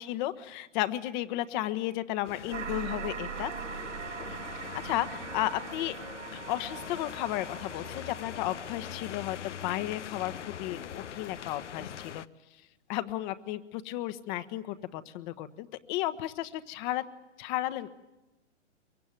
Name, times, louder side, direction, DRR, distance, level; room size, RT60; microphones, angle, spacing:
voice 1, 0.0-3.5 4.3-6.0 6.3-12.2 12.9-17.0 17.4-17.9, left 14 dB, 40° left, 13 dB, 1.4 m, -34 dB
sound 1, 2.2-12.3, left 9 dB, 80° left, 0.9 m, -42 dB
sound 2, 2.5-9.0, right 8 dB, 75° right, 2.0 m, -41 dB
23.5 x 23.0 x 9.2 m, 1.0 s
hypercardioid pair, 120°, 36 cm